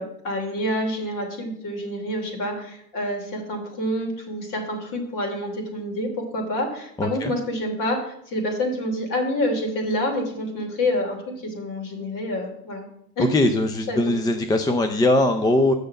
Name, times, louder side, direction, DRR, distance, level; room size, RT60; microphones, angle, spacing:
voice 1, 0.0-12.9 13.2-13.3 13.9-14.1, left 1 dB, 40° left, 2 dB, 3.2 m, -27 dB
voice 2, 7.0-7.3 13.3-15.7, left 2 dB, 10° left, 7 dB, 0.5 m, -20 dB
6.7 x 6.5 x 7.6 m, 0.71 s
hypercardioid pair, 105°, 48 cm